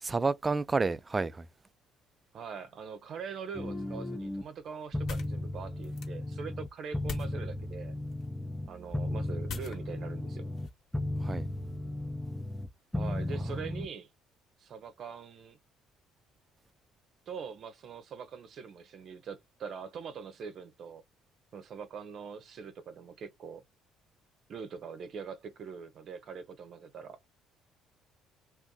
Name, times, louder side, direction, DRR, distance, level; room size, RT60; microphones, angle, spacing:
voice 1, 0.0-1.5 11.2-11.5 13.6-13.8, right 4 dB, 25° right, 0.4 m, -30 dB
voice 2, 2.3-7.9 8.7-10.5 12.9-14.1 14.6-15.6 17.3-21.0 21.5-23.6 24.5-27.2, right 6 dB, 55° right, 0.8 m, -43 dB
sound 1, 3.5-4.4 4.9-6.7 6.9-10.7 10.9-12.7 12.9-13.9, left 1 dB, 5° left, 0.7 m, -35 dB
sound 2, 3.8-11.3, left 6 dB, 55° left, 1.2 m, -48 dB
2.6 x 2.2 x 3.7 m
hypercardioid pair, 55°, 0 cm